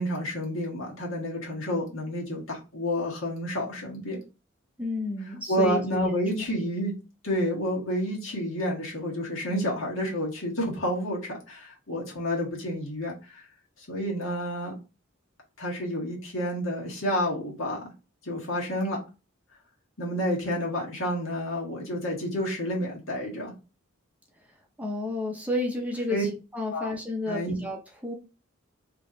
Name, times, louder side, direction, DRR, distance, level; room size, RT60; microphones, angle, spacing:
voice 1, 0.0-4.2 5.5-6.9 7.2-13.4 13.9-14.8 15.6-17.9 18.2-19.0 20.0-23.5 26.1-26.2 26.7-26.9 27.2-27.5, equal, 70° left, -2 dB, 1.7 m, -29 dB
voice 2, 4.8-6.1 6.4-6.5 24.8-28.1, left 2 dB, 5° right, 1 dB, 0.7 m, -31 dB
3.4 x 3.0 x 3.8 m, 0.29 s
head